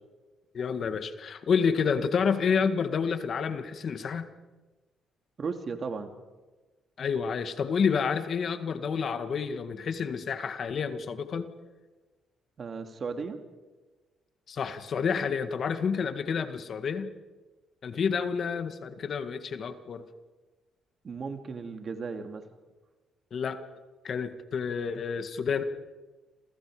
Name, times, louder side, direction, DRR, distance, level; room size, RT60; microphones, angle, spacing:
voice 1, 0.5-4.3 7.0-11.5 14.5-17.1 17.8-20.0 23.3-23.6 24.0-25.6, left 6 dB, 55° left, 9 dB, 2.0 m, -29 dB
voice 2, 5.4-6.1 12.6-13.4 21.0-22.4, right 5 dB, 45° right, 6 dB, 2.8 m, -35 dB
29.0 x 28.0 x 5.1 m, 1.2 s
cardioid pair, 90°, 0 cm